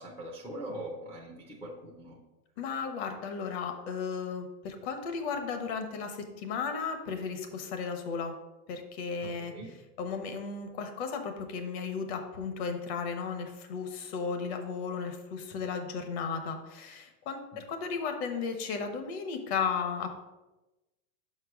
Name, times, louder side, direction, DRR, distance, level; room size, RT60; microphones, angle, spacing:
voice 1, 0.0-2.2 9.2-9.7 17.5-17.6, right 1 dB, 5° left, -3 dB, 0.4 m, -42 dB
voice 2, 2.6-8.3 8.7-9.5 10.0-20.2, left 5 dB, 45° left, 6 dB, 1.1 m, -35 dB
6.1 x 4.5 x 6.0 m, 1.0 s
supercardioid pair, 160°, 45 cm